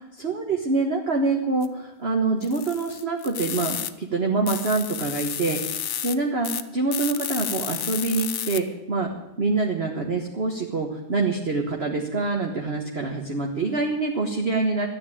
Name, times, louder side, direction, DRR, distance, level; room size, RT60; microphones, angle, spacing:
voice 1, 0.2-5.8 6.0-9.1 9.4-14.9, right 3 dB, 35° right, 1 dB, 1.5 m, -25 dB
sound 1, 1.6-1.7 2.4-3.9 4.5-6.1 6.4-6.6 6.9-8.6, left 10 dB, 70° left, 0.6 m, -31 dB
13.0 x 9.8 x 8.6 m, 0.95 s
omnidirectional pair, 2.1 m